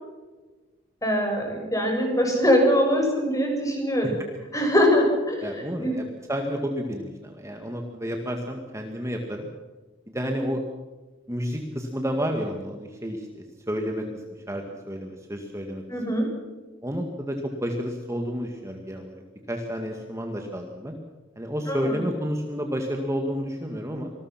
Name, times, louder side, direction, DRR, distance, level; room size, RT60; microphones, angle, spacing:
voice 1, 1.0-4.2 4.5-5.5 5.8-6.0 15.9-16.3 21.7-22.0, equal, 20° left, 1 dB, 7.0 m, -22 dB
voice 2, 5.4-9.5 10.1-10.6 11.3-14.0 14.5-15.8 16.8-19.2 19.5-20.9 21.4-24.1, equal, 15° right, 3 dB, 1.9 m, -30 dB
27.0 x 20.0 x 5.9 m, 1.3 s
head